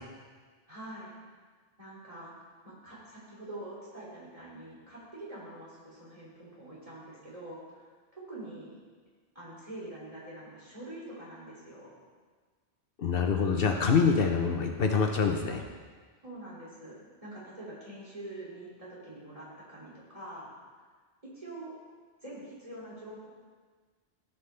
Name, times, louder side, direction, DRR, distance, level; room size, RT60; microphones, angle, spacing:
voice 1, 0.7-1.1 1.8-2.3 2.6-8.8 9.3-12.0 16.2-20.5 21.3-21.7 22.2-23.3, right 1 dB, 35° right, -7 dB, 2.8 m, -45 dB
voice 2, 13.0-15.6, left 5 dB, 65° left, 3 dB, 0.9 m, -25 dB
14.5 x 5.7 x 3.3 m, 1.5 s
omnidirectional pair, 1.1 m